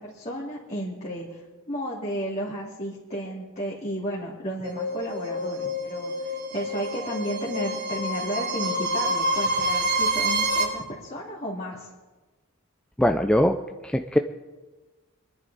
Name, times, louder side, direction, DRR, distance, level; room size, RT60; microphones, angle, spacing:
voice 1, 0.0-11.9, equal, 35° left, -6 dB, 2.5 m, -33 dB
sound 1, 4.6-10.6, right 1 dB, 70° right, 6.4 m, -27 dB
voice 2, 13.0-13.6 13.8-14.2, equal, 5° left, 5 dB, 0.4 m, -21 dB
25.0 x 10.5 x 4.1 m, 1.2 s
head